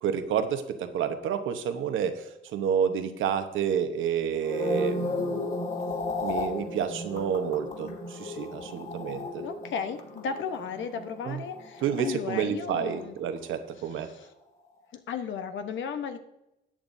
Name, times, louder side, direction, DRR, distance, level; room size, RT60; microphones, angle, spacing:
voice 1, 0.0-5.6 6.2-9.4 11.2-11.4 11.8-14.1, right 8 dB, 80° right, 8 dB, 1.1 m, -29 dB
sound 1, 4.3-12.7 13.0-13.4, left 2 dB, 45° left, 3.9 m, -34 dB
voice 2, 9.4-13.1 14.0-14.3 14.9-16.2, left 6 dB, 70° left, 8 dB, 1.1 m, -35 dB
13.5 x 8.7 x 2.7 m, 0.88 s
cardioid pair, 90°, 20 cm